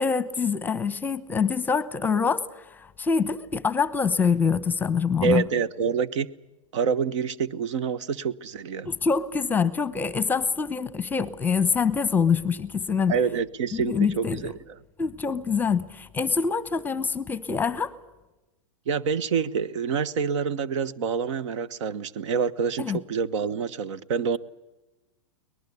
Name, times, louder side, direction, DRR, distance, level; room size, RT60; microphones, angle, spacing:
voice 1, 0.0-5.4 8.8-13.2 13.7-14.5 15.0-17.9 22.8-23.0, left 5 dB, 10° left, 17 dB, 0.9 m, -25 dB
voice 2, 5.2-6.3 6.7-8.9 13.1-14.5 18.9-24.4, right 6 dB, 65° right, 18 dB, 1.2 m, -27 dB
23.0 x 20.0 x 8.4 m, 1.0 s
hypercardioid pair, 135°, 16 cm